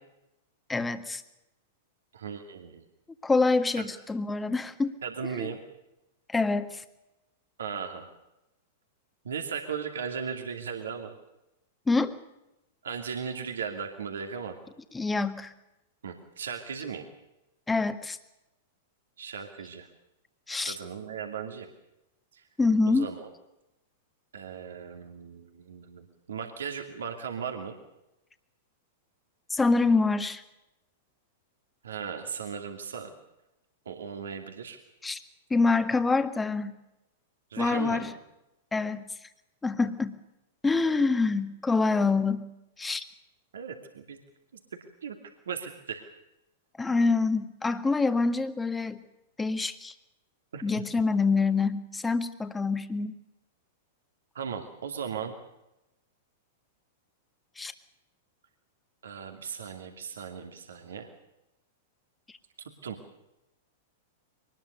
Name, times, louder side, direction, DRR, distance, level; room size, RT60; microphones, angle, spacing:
voice 1, 0.7-1.2 3.2-5.0 5.3-5.5 6.3-6.8 11.9-12.1 14.9-15.5 17.7-18.2 20.5-20.8 22.6-23.1 29.5-30.4 35.0-35.2 35.5-36.8 37.6-38.1 38.7-39.1 39.6-40.2 40.6-42.5 42.8-43.0 46.8-49.0 49.4-49.9 50.6-53.1 57.6-57.7, left 3 dB, 10° left, 10 dB, 1.7 m, -26 dB
voice 2, 2.1-2.8 5.0-5.6 7.6-8.1 9.2-11.1 12.8-14.6 16.0-17.1 19.2-19.9 20.6-21.7 22.3-22.4 22.9-23.3 24.3-27.7 31.8-33.1 33.9-34.8 37.5-38.1 43.5-44.2 45.0-45.2 45.5-46.0 50.5-50.6 54.3-55.3 59.0-61.1 62.8-63.0, right 6 dB, 75° right, 4 dB, 2.5 m, -37 dB
23.5 x 20.0 x 6.8 m, 0.92 s
figure-of-eight pair, 100°, 0 cm